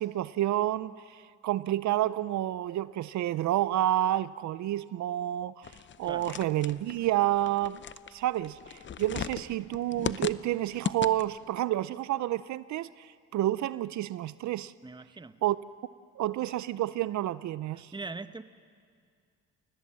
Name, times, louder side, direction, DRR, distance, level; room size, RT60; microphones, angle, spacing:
voice 1, 0.0-5.7 6.0-7.8 8.1-14.7 15.4-15.6 16.2-17.9, right 14 dB, 70° right, 0.5 m, -29 dB
sound 1, 5.6-11.5, left 8 dB, 40° left, 0.7 m, -38 dB
voice 2, 14.8-15.4 17.7-18.4, right 3 dB, 15° right, 0.9 m, -41 dB
29.0 x 19.0 x 7.6 m
cardioid pair, 90°, 30 cm